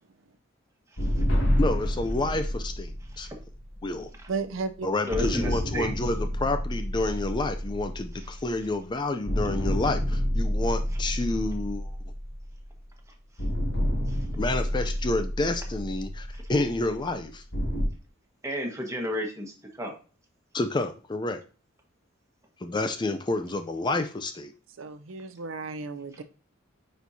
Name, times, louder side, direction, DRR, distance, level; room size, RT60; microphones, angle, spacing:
sound 1, 1.0-4.5 5.1-8.9 9.3-12.9 13.4-17.8, equal, 65° left, 1.7 m, -29 dB
voice 1, 1.6-3.3 3.8-4.1 4.8-12.0 14.4-17.4 20.5-21.4 22.6-24.5, left 2 dB, 20° left, 0.4 m, -29 dB
voice 2, 4.3-4.9 24.8-26.2, right 4 dB, 70° right, 0.5 m, -34 dB
voice 3, 5.1-5.9 14.1-14.2 18.4-19.9, left 1 dB, 15° right, 1.4 m, -32 dB
9.2 x 4.3 x 2.7 m
head